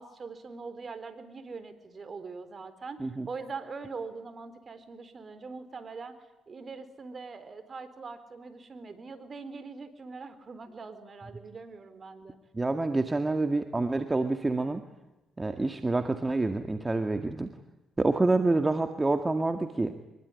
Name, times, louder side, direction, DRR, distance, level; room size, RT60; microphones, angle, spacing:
voice 1, 0.0-6.2 6.5-12.4, right 4 dB, 40° right, 12 dB, 4.1 m, -42 dB
voice 2, 12.5-14.8 15.4-17.5 18.0-19.9, right 2 dB, 20° right, 7 dB, 2.0 m, -27 dB
24.5 x 23.0 x 9.9 m, 0.98 s
cardioid pair, 75°, 0 cm